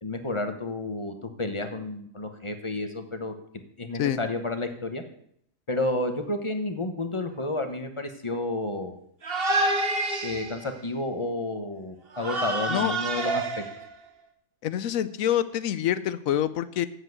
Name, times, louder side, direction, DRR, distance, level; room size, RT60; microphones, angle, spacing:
voice 1, 0.0-3.3 3.8-5.0 5.7-8.9 10.2-13.7, left 2 dB, 25° left, 7 dB, 1.0 m, -31 dB
sound 1, 9.2-10.7 12.1-14.0, right 2 dB, 45° right, 1.5 m, -28 dB
voice 2, 14.6-16.9, left 11 dB, 80° left, 14 dB, 1.0 m, -26 dB
8.0 x 7.9 x 7.9 m, 0.71 s
omnidirectional pair, 1.4 m